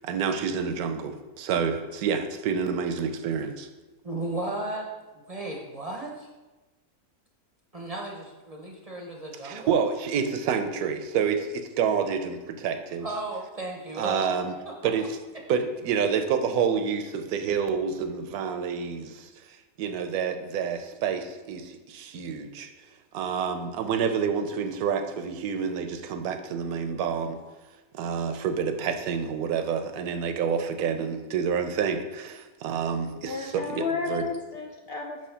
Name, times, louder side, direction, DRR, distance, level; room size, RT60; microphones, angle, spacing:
voice 1, 0.0-3.7 9.4-13.1 14.0-14.5 14.8-15.2 15.5-22.7 23.1-27.4 27.9-34.2, right 6 dB, 80° right, 7 dB, 1.1 m, -28 dB
voice 2, 4.0-6.3 7.7-9.8 13.0-14.2 14.7-14.8 15.0-15.1, right 2 dB, 35° right, -1 dB, 0.6 m, -35 dB
voice 3, 33.2-35.3, left 5 dB, 70° left, 2 dB, 0.5 m, -32 dB
6.5 x 3.0 x 5.6 m, 1.1 s
omnidirectional pair, 1.6 m